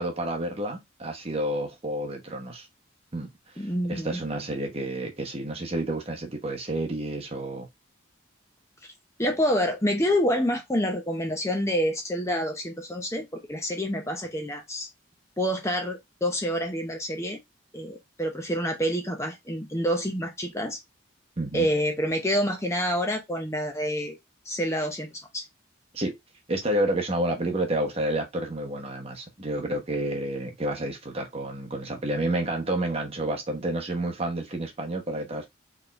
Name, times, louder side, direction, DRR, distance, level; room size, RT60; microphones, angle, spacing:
voice 1, 0.0-2.7 3.1-7.7 21.4-21.7 25.9-26.2 26.5-35.5, right 1 dB, 30° right, 1.0 m, -30 dB
voice 2, 3.6-4.2 9.2-14.9 15.4-17.4 17.7-20.8 21.5-24.2 24.5-25.1 25.3-25.4, equal, 15° left, 0.7 m, -27 dB
4.3 x 3.5 x 2.4 m
head